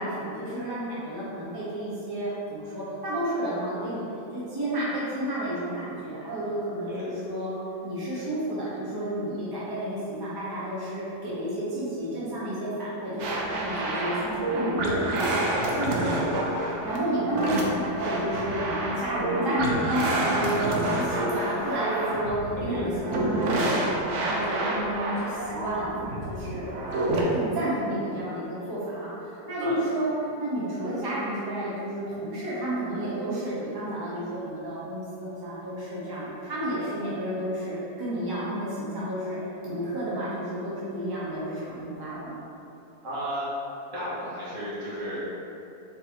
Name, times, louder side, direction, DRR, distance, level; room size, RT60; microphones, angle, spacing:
voice 1, 0.0-4.0 4.3-7.6 7.8-16.3 16.8-26.7 27.0-29.1 29.5-30.1 30.4-39.4 39.6-42.4, right 1 dB, 25° right, -9 dB, 0.5 m, -31 dB
sound 1, 13.2-27.2, right 1 dB, 70° right, 0.7 m, -28 dB
voice 2, 15.9-16.3 22.6-22.9 29.6-29.8 43.0-43.5 43.9-45.2, equal, 55° right, -10 dB, 1.4 m, -33 dB
4.5 x 2.7 x 2.9 m, 2.8 s
omnidirectional pair, 1.7 m